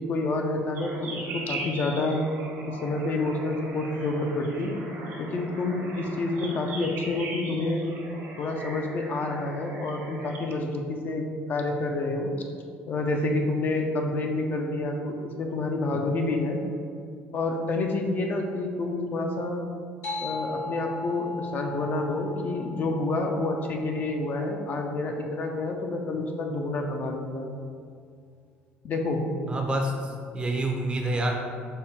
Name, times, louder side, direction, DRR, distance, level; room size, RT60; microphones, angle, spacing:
voice 1, 0.0-2.2 2.7-4.7 5.2-7.9 8.4-12.3 12.9-16.6 17.3-19.7 20.2-27.5 28.8-29.2, left 2 dB, 45° left, 2 dB, 0.5 m, -28 dB
sound 1, 0.7-10.5, right 2 dB, 70° right, 1.3 m, -40 dB
sound 2, 20.0-25.0, left 3 dB, 80° left, 1.5 m, -38 dB
voice 2, 29.5-31.3, right 1 dB, 20° right, 2 dB, 0.5 m, -27 dB
5.3 x 2.1 x 4.2 m, 2.2 s
cardioid pair, 105°, 5 cm